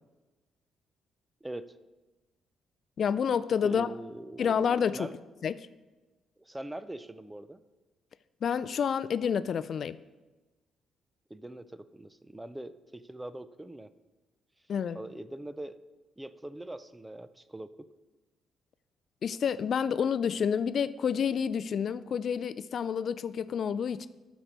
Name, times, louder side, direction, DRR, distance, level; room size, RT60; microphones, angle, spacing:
voice 1, 1.4-1.8 3.6-4.5 4.9-5.1 6.4-7.6 11.3-13.9 14.9-15.8 16.2-17.9, right 1 dB, 10° right, 0.5 m, -42 dB
voice 2, 3.0-3.9 4.4-5.1 5.4-5.5 8.4-10.0 14.7-15.0 19.2-24.1, left 7 dB, 55° left, 0.3 m, -29 dB
12.0 x 4.7 x 5.1 m
cardioid pair, 90°, 0 cm